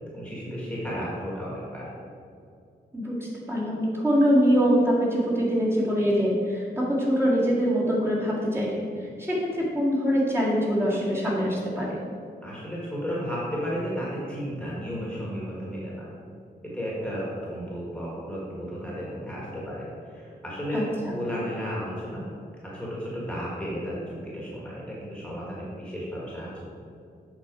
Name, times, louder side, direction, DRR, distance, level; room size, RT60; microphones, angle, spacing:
voice 1, 0.1-1.9 12.4-16.1 16.7-22.2 22.7-26.7, equal, 5° left, -6 dB, 1.7 m, -33 dB
voice 2, 2.9-12.0 20.7-21.2, equal, 15° right, -7 dB, 1.9 m, -24 dB
8.1 x 6.2 x 4.9 m, 2.4 s
wide cardioid pair, 165°, 18 cm